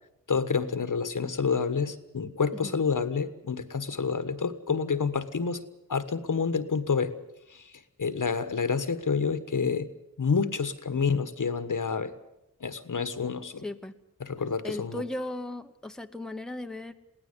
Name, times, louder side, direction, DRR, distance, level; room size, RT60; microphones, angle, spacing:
voice 1, 0.3-5.6 5.9-7.1 7.5-7.7 8.0-9.9 10.2-12.1 12.6-13.6 14.2-15.0, left 5 dB, 70° left, 12 dB, 1.4 m, -28 dB
voice 2, 13.6-13.9 14.6-16.9, left 1 dB, ahead, 7 dB, 0.9 m, -36 dB
22.0 x 17.5 x 8.2 m, 0.87 s
wide cardioid pair, 80°, 33 cm